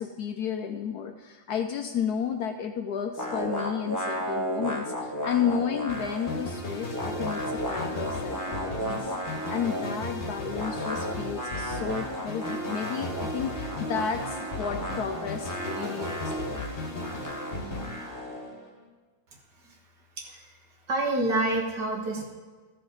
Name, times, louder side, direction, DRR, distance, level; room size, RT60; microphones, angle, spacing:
voice 1, 0.0-16.6, left 7 dB, 75° left, 6 dB, 1.0 m, -32 dB
sound 1, 3.2-6.5 6.7-10.0 10.5-18.5, equal, 10° left, 0.9 m, -34 dB
sound 2, 5.9-18.8, left 1 dB, 35° left, 1.4 m, -36 dB
voice 2, 20.2-20.5 20.9-22.3, right 2 dB, 65° right, -1 dB, 2.2 m, -28 dB
14.0 x 6.6 x 4.0 m, 1.4 s
omnidirectional pair, 2.0 m